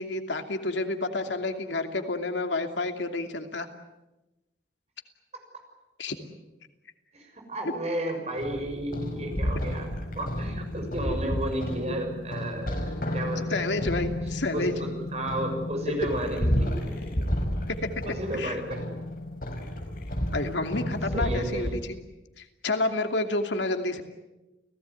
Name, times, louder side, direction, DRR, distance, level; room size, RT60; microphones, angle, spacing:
voice 1, 0.0-3.7 6.0-6.2 13.5-14.7 17.7-17.9 18.3-18.6 20.3-22.0 22.4-24.0, left 2 dB, 90° left, 6 dB, 2.7 m, -29 dB
voice 2, 7.1-13.7 14.5-17.0 18.1-18.9 20.5-20.7 21.1-21.8, right 1 dB, 35° right, 4 dB, 6.6 m, -33 dB
sound 1, 8.4-21.7, equal, 50° left, 5.0 m, -31 dB
29.5 x 18.0 x 9.5 m, 1.0 s
head